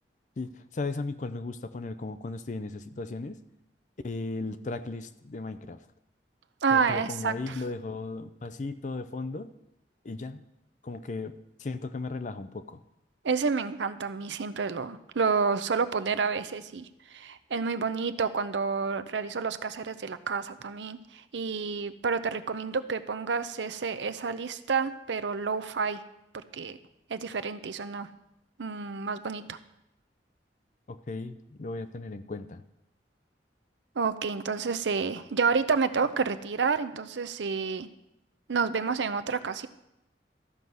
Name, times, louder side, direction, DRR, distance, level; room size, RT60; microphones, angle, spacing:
voice 1, 0.4-3.4 4.0-5.8 6.7-9.5 10.0-10.4 10.8-12.8 30.9-32.6, left 3 dB, 45° left, 11 dB, 0.5 m, -36 dB
voice 2, 6.6-7.6 13.2-26.0 26.5-26.8 27.1-28.1 28.6-29.6 34.0-37.9 38.5-39.7, right 5 dB, 85° right, 11 dB, 0.6 m, -29 dB
13.5 x 6.2 x 5.4 m, 0.86 s
head